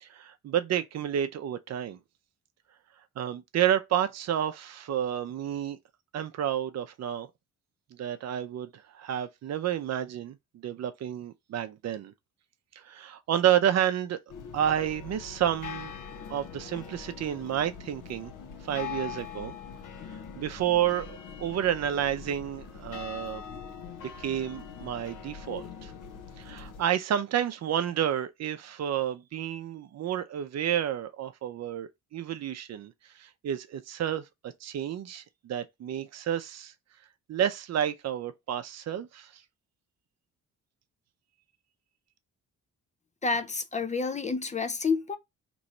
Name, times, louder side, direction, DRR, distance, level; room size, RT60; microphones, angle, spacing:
voice 1, 0.0-2.0 3.2-5.8 6.1-7.3 7.9-10.4 10.6-12.1 12.8-14.2 14.5-15.9 16.3-18.3 18.6-19.5 20.1-23.4 24.2-25.9 26.4-36.7 37.3-39.4, right 10 dB, 55° right, 0.5 m, -30 dB
sound 1, 14.3-26.8, left 7 dB, 75° left, 0.8 m, -42 dB
voice 2, 43.2-45.2, left 4 dB, 25° left, 0.4 m, -29 dB
3.1 x 2.6 x 4.2 m
cardioid pair, 90°, 31 cm